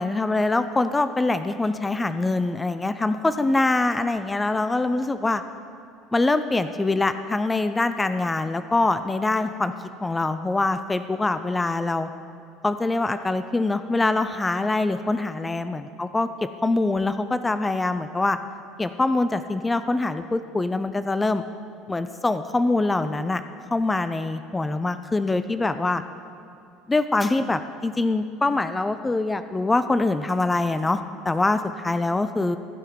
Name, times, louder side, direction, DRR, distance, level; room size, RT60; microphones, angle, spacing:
voice 1, 0.0-5.4 6.1-9.7 10.0-12.1 12.6-18.4 18.8-21.4 21.9-23.4 23.7-26.0 26.9-32.6, left 2 dB, 15° left, 11 dB, 0.4 m, -24 dB
15.0 x 5.6 x 6.1 m, 2.5 s
figure-of-eight pair, 65°, 0 cm